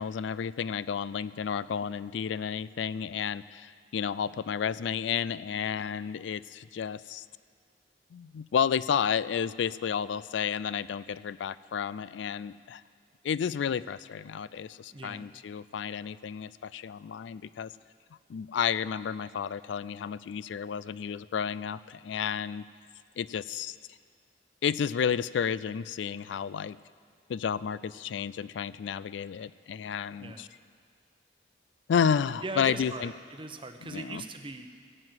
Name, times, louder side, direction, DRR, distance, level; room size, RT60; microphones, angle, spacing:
voice 1, 0.0-7.2 8.1-12.8 13.2-17.7 18.3-22.6 23.2-23.8 24.6-26.8 27.3-30.5 31.9-33.1 33.8-34.2, left 7 dB, 90° left, 18 dB, 0.3 m, -31 dB
voice 2, 14.9-15.2 30.2-30.5 32.4-34.8, right 3 dB, 30° right, 7 dB, 0.8 m, -40 dB
17.0 x 7.6 x 8.0 m, 2.1 s
head